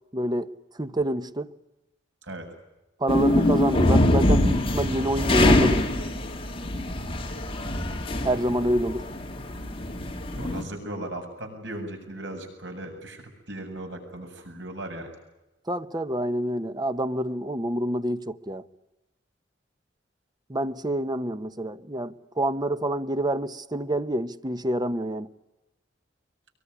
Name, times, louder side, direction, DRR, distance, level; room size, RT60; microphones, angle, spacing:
voice 1, 0.1-0.5 0.8-1.5 3.0-5.8 8.2-9.0 15.7-18.6 20.5-25.3, right 1 dB, 20° right, 1.0 m, -27 dB
sound 1, 3.1-10.6, left 1 dB, 30° left, 3.3 m, -24 dB
voice 2, 10.3-15.1, right 1 dB, 70° right, 7.5 m, -37 dB
24.5 x 23.0 x 9.7 m
head